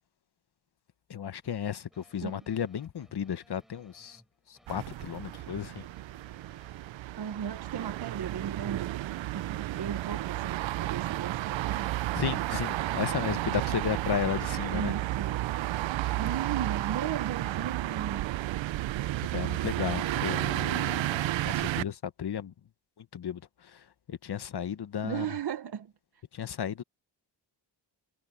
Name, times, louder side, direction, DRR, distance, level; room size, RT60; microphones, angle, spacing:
voice 1, 1.1-4.2 4.5-5.9 12.1-14.9 16.0-16.2 19.3-22.5 23.0-25.3 26.3-26.8, left 8 dB, 60° left, 1.3 m, -34 dB
sound 1, 1.4-16.3, equal, ahead, 7.7 m, -60 dB
sound 2, 4.7-21.8, right 15 dB, 75° right, 0.6 m, -32 dB
voice 2, 7.2-8.9 9.3-12.0 14.7-15.4 16.1-18.3 25.0-26.2, right 8 dB, 60° right, 1.1 m, -36 dB
cardioid pair, 95°, 45 cm